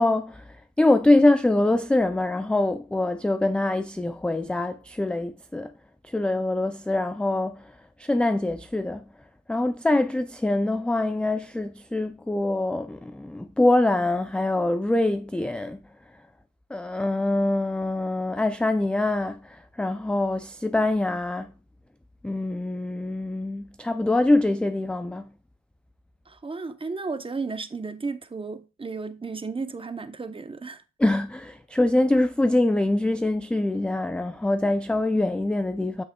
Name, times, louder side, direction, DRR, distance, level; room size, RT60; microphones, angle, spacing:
voice 1, 0.0-5.7 6.0-7.7 8.0-9.1 9.5-15.8 16.7-21.5 22.2-25.3 31.0-36.0, left 2 dB, 5° left, 0.3 m, -24 dB
voice 2, 26.3-30.8, right 4 dB, 20° right, 0.7 m, -33 dB
8.0 x 6.4 x 2.2 m
cardioid pair, 90°, 30 cm